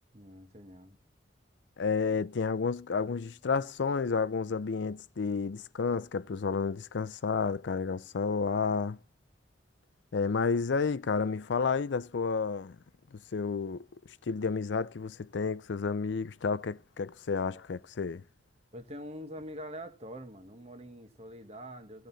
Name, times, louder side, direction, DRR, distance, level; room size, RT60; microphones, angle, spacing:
voice 1, 0.1-1.0 18.7-22.1, equal, 35° right, 1.5 m, -44 dB
voice 2, 1.8-9.0 10.1-12.8 13.1-13.8 14.3-18.2, left 5 dB, 85° left, 0.5 m, -31 dB
16.5 x 6.5 x 4.0 m
head